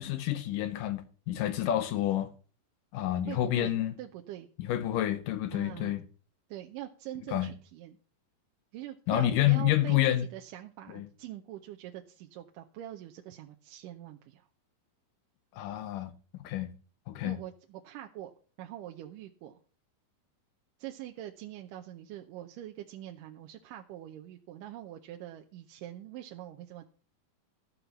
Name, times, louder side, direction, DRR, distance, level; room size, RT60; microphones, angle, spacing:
voice 1, 0.0-2.3 2.9-4.0 4.6-6.0 7.3-7.5 9.1-10.2 10.9-11.1 15.6-16.1 16.4-16.7 17.1-17.4, left 13 dB, 75° left, 2.3 m, -28 dB
voice 2, 3.3-4.5 5.5-6.0 6.5-8.0 8.7-14.5 17.2-18.3 18.6-19.6 20.8-26.9, right 13 dB, 75° right, 2.2 m, -44 dB
13.5 x 5.5 x 7.0 m
omnidirectional pair, 4.1 m